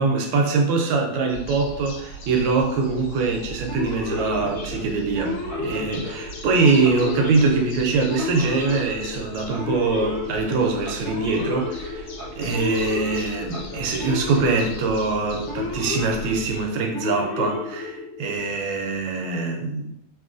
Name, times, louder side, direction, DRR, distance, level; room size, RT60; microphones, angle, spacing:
voice 1, 0.0-19.9, right 4 dB, 75° right, 2 dB, 1.2 m, -23 dB
sound 1, 1.3-16.7, right 1 dB, 85° left, 1.4 m, -40 dB
Male speech man speaking / Siren, 3.7-18.4, left 3 dB, 50° left, 0.9 m, -32 dB
3.0 x 2.9 x 2.4 m, 0.79 s
omnidirectional pair, 2.2 m